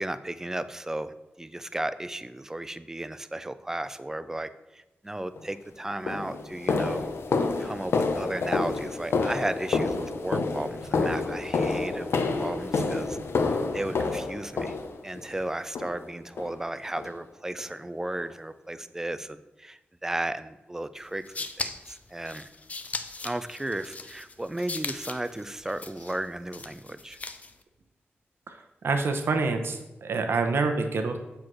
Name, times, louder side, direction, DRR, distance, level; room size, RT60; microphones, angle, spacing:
voice 1, 0.0-7.1 7.6-13.2 13.7-14.7 15.0-22.5 23.2-27.2, right 1 dB, 10° right, 13 dB, 0.4 m, -34 dB
sound 1, 5.4-5.5 6.1-15.3 15.8-16.1 16.4-16.6 17.0-17.2 17.6-17.7 18.2-18.3, left 4 dB, 80° left, 0.8 m, -28 dB
sound 2, 21.0-27.6, left 3 dB, 35° left, 0.6 m, -38 dB
voice 2, 28.8-31.2, right 4 dB, 70° right, 6 dB, 0.9 m, -27 dB
8.3 x 4.6 x 6.2 m, 1.0 s
wide cardioid pair, 150°, 4 cm